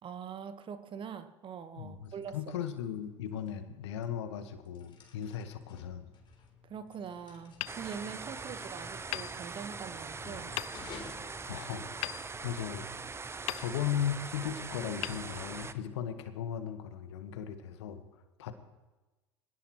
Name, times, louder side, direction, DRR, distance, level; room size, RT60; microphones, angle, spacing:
voice 1, 0.0-2.4 6.6-10.6, right 7 dB, 35° right, 11 dB, 1.4 m, -43 dB
voice 2, 1.8-6.1 11.5-12.9 13.6-18.0 18.4-18.5, left 9 dB, 65° left, 9 dB, 1.5 m, -37 dB
sound 1, 1.8-12.3, left 5 dB, 30° left, 3.7 m, -55 dB
Hammer, 7.6-8.6 9.1-10.0 10.6-11.2 12.0-13.0 13.4-14.2 15.0-16.0, left 22 dB, 50° left, 0.4 m, -42 dB
sound 2, 7.7-15.7, right 4 dB, 15° right, 0.9 m, -42 dB
25.0 x 17.0 x 3.2 m, 1.2 s
figure-of-eight pair, 70°, 15 cm